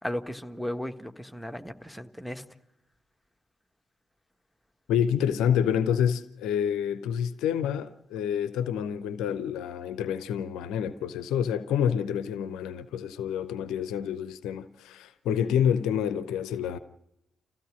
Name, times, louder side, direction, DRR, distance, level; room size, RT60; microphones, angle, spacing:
voice 1, 0.0-2.4, equal, ahead, 1.5 m, -35 dB
voice 2, 4.9-16.8, left 8 dB, 65° left, 0.6 m, -28 dB
26.5 x 15.5 x 6.2 m
figure-of-eight pair, 40°, 0 cm